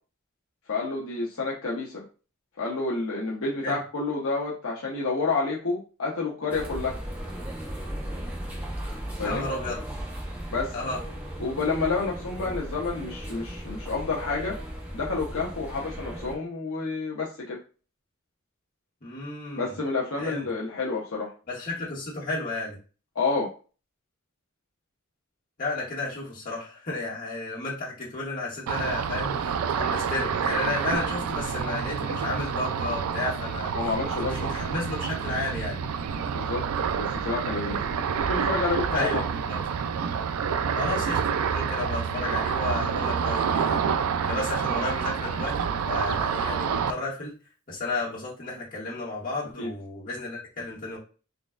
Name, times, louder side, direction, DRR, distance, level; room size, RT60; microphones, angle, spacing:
voice 1, 0.7-2.0 2.6-7.0 9.2-9.4 10.5-10.7 11.4-14.6 14.9-17.6 19.6-21.3 23.1-23.5 33.7-34.5 36.3-36.6 37.0-37.8 38.2-39.2 49.6-49.7, left 3 dB, 80° left, -3 dB, 0.8 m, -29 dB
sound 1, 6.5-16.4, equal, 10° right, 0.9 m, -36 dB
voice 2, 9.2-9.8 10.7-11.0 19.0-19.7 20.2-20.5 21.5-22.8 25.6-33.7 34.3-35.8 38.9-39.6 40.7-41.2 41.5-43.8 44.2-47.3 47.7-51.0, left 2 dB, 40° left, -6 dB, 1.8 m, -32 dB
Ocean, 28.7-46.9, right 6 dB, 90° right, 0.3 m, -28 dB
3.9 x 3.1 x 2.4 m, 0.35 s
head